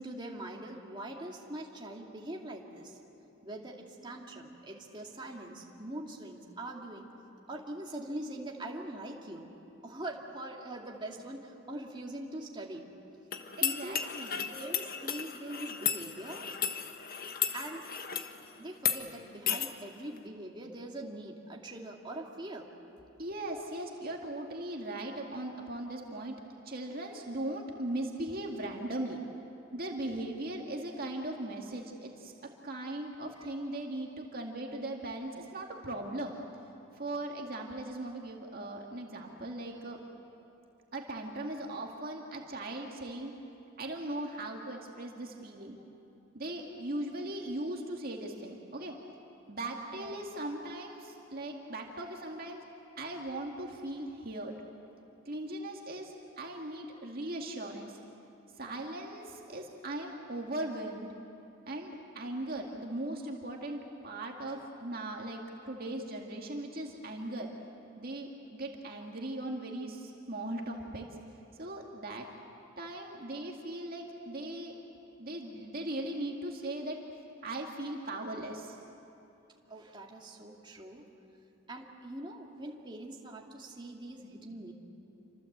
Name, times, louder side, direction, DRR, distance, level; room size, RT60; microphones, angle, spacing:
voice 1, 0.0-3.0 3.4-7.1 7.5-9.6 9.8-12.8 13.6-14.0 14.5-16.5 17.5-17.9 18.6-22.7 49.9-50.2 78.3-78.5 79.7-81.1 81.7-84.7, right 1 dB, 25° right, -1 dB, 2.5 m, -43 dB
sound 1, 13.3-18.3 18.8-19.0 19.5-19.7, left 8 dB, 45° left, 1.3 m, -34 dB
voice 2, 13.6-14.5 23.2-26.3 26.7-29.2 29.7-32.3 32.6-36.4 36.9-40.0 40.9-43.3 43.8-45.8 46.3-48.9 49.5-52.6 53.0-54.5 55.3-58.0 58.6-61.1 61.7-67.5 68.0-71.1 71.6-72.3 72.8-74.7 75.2-77.0 77.4-78.8, right 1 dB, 45° right, 1 dB, 2.1 m, -39 dB
28.5 x 25.5 x 8.1 m, 2.9 s
head